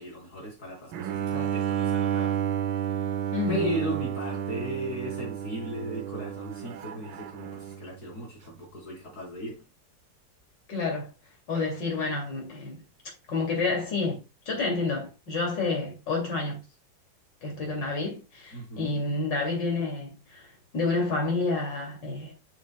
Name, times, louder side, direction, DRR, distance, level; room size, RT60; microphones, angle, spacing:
voice 1, 0.0-2.4 3.5-9.6 18.5-19.0, right 1 dB, 55° left, 4.7 m, -36 dB
Bowed string instrument, 0.9-7.9, right 9 dB, 85° right, 1.4 m, -31 dB
voice 2, 3.3-3.7 10.7-11.1 11.5-12.8 13.3-14.2 14.5-16.6 17.4-20.5 20.7-22.3, left 3 dB, 70° left, 3.2 m, -29 dB
8.2 x 7.5 x 2.2 m
omnidirectional pair, 2.0 m